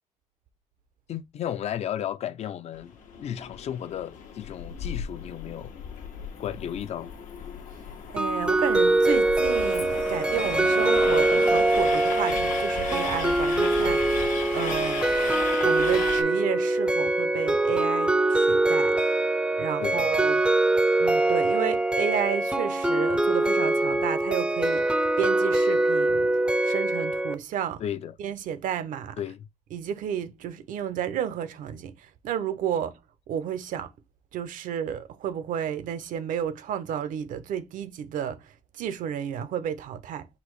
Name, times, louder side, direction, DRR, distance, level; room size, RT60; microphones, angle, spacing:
voice 1, 1.1-2.9 3.2-5.7 6.4-7.1 19.8-20.1 27.8-28.2 29.2-29.5, left 10 dB, 55° left, 0.4 m, -33 dB
Train, 2.7-16.2, left 6 dB, 90° left, 1.1 m, -36 dB
voice 2, 8.1-14.3 14.5-15.1 15.6-19.0 19.6-20.4 21.0-26.3 26.6-27.8 28.2-29.2 29.7-33.0 33.3-33.9 34.3-40.3, right 9 dB, 80° right, 0.7 m, -32 dB
sound 1, 8.2-27.3, right 2 dB, 5° right, 0.4 m, -23 dB
4.2 x 2.6 x 4.5 m
cardioid pair, 145°, 13 cm